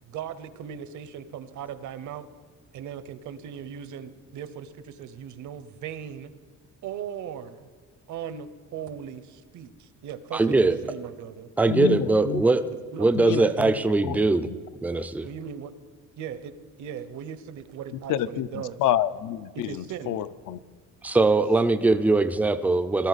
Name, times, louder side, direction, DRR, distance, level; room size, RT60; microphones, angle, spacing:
voice 1, 0.0-2.3 2.7-6.3 6.8-7.7 8.1-11.5 12.9-13.7 15.2-15.7 16.2-16.5 16.8-18.8 19.5-20.2, right 8 dB, 65° right, 13 dB, 0.8 m, -38 dB
voice 2, 10.3-10.8 11.6-12.6 13.0-14.5 14.8-15.3 21.0-23.1, right 3 dB, 5° right, 11 dB, 0.3 m, -21 dB
voice 3, 11.7-12.4 13.2-13.7 14.0-14.6 18.1-20.6, left 11 dB, 75° left, 14 dB, 0.6 m, -28 dB
18.5 x 12.5 x 4.0 m, 1.6 s
cardioid pair, 170°, 32 cm